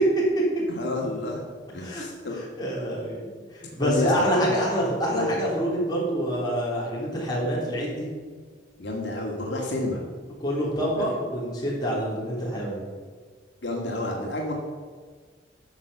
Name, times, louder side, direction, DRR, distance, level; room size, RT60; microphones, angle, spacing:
voice 1, 0.7-1.4 1.7-2.4 3.8-4.5 5.1-5.5 8.8-10.0 11.0-11.1 13.6-14.5, left 2 dB, 75° left, -1 dB, 1.9 m, -29 dB
voice 2, 2.6-8.1 10.4-12.8, equal, 20° left, -5 dB, 3.4 m, -27 dB
11.0 x 6.6 x 6.7 m, 1.5 s
head